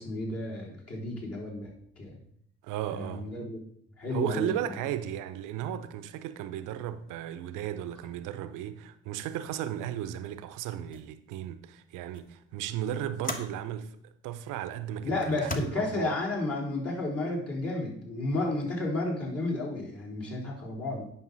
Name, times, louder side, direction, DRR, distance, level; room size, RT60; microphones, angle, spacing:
voice 1, 0.0-2.2 2.9-3.6 4.0-4.6 15.0-21.0, left 2 dB, 50° left, 3.7 m, -32 dB
voice 2, 2.6-3.3 4.1-16.1, right 11 dB, 75° right, 0.7 m, -35 dB
sound 1, 10.3-10.5 10.9-11.2 12.1-12.3 13.2-13.6 14.4-14.5 15.3-15.6, left 2 dB, 25° left, 1.2 m, -37 dB
9.9 x 5.4 x 4.0 m
hypercardioid pair, 55°, 32 cm